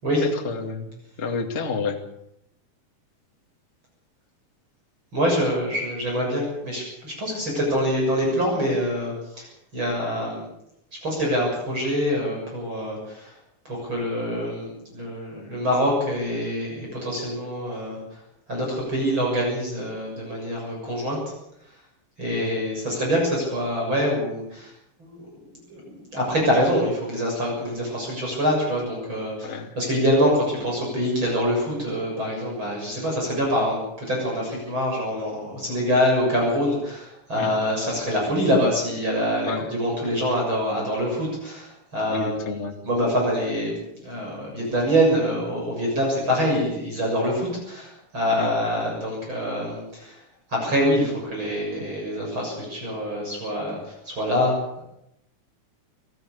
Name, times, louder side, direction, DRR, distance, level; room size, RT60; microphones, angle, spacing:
voice 1, 0.2-2.0 22.4-22.6 29.4-29.7 37.4-37.5 39.4-39.7 42.1-42.8 48.4-48.5, left 4 dB, 25° left, 3 dB, 1.9 m, -30 dB
voice 2, 5.1-9.5 9.7-10.4 11.0-13.3 13.7-18.0 18.5-21.2 22.2-24.7 25.0-25.2 25.7-42.5 42.8-50.2 50.5-54.8, equal, 35° right, -1 dB, 7.6 m, -25 dB
27.0 x 14.5 x 7.0 m, 0.82 s
omnidirectional pair, 3.7 m